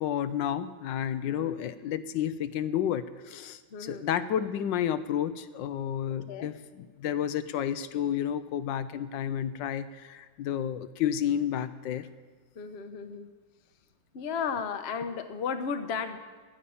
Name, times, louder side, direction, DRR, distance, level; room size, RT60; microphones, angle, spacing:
voice 1, 0.0-12.1, left 9 dB, 80° left, 12 dB, 1.3 m, -31 dB
voice 2, 3.7-4.1 6.3-6.5 12.6-13.3 14.1-16.2, left 6 dB, 45° left, 9 dB, 0.9 m, -34 dB
11.0 x 11.0 x 8.5 m, 1.4 s
omnidirectional pair, 2.0 m